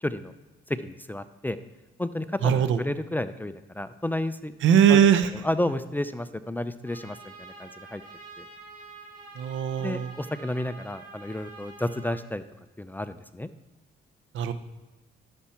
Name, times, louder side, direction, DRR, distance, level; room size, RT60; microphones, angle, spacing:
voice 1, 0.0-0.3 0.7-1.6 2.0-4.5 4.9-5.0 5.4-8.0 8.4-8.5 9.8-12.4 12.8-13.5, left 1 dB, 10° left, 12 dB, 0.4 m, -31 dB
voice 2, 2.4-2.8 4.6-5.3 9.4-10.1 14.3-14.5, right 9 dB, 75° right, 11 dB, 0.7 m, -20 dB
Trumpet, 6.8-12.2, right 3 dB, 45° right, 2.4 m, -47 dB
11.0 x 7.0 x 4.3 m, 1.1 s
cardioid pair, 90°, 20 cm